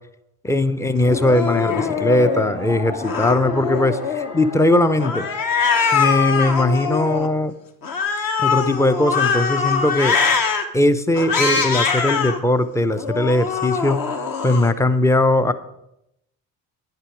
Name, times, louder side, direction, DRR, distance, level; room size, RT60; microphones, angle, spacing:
voice 1, 0.4-5.3 5.9-7.5 8.4-10.2 10.7-15.5, left 1 dB, 5° left, 12 dB, 0.6 m, -19 dB
sound 1, 0.9-7.5, left 2 dB, 80° left, 2.1 m, -34 dB
Cat, 1.1-2.5 3.0-4.4 5.0-7.3 7.8-10.6 11.1-12.4 12.9-14.7, left 5 dB, 45° left, 1.3 m, -22 dB
10.0 x 9.6 x 5.0 m, 0.83 s
figure-of-eight pair, 45°, 48 cm